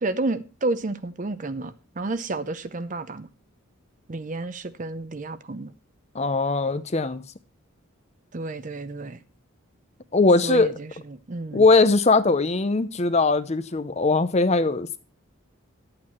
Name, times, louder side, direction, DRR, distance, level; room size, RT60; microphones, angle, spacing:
voice 1, 0.0-3.3 4.1-5.7 8.3-9.2 10.4-11.7, right 2 dB, 35° right, 0.6 m, -31 dB
voice 2, 6.1-7.2 10.1-10.7 11.5-15.0, left 3 dB, 30° left, 0.6 m, -20 dB
10.5 x 8.7 x 4.3 m
head